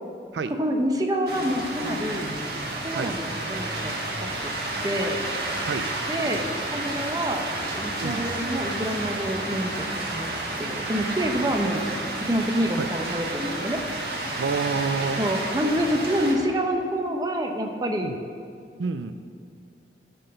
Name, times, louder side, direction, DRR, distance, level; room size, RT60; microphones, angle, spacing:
voice 1, 0.6-2.3 2.8-3.9 4.2-4.3 4.8-5.2 6.1-10.3 10.6-11.9 12.2-13.8 15.2-18.1, equal, 20° right, 3 dB, 0.8 m, -27 dB
sound 1, 1.3-16.3, right 2 dB, 60° right, 1.6 m, -31 dB
voice 2, 14.4-15.2 18.0-18.2 18.8-19.1, right 5 dB, 85° right, 10 dB, 0.4 m, -28 dB
13.5 x 4.6 x 6.4 m, 2.3 s
head